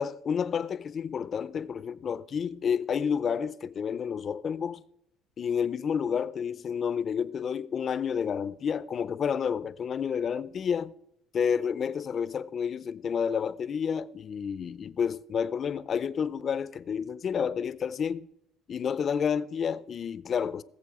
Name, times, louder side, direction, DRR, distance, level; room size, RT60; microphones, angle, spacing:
voice 1, 0.0-4.8 5.4-10.9 11.3-18.3 18.7-20.6, left 7 dB, 40° left, 0.5 m, -30 dB
18.5 x 7.5 x 4.8 m
cardioid pair, 130°, 0 cm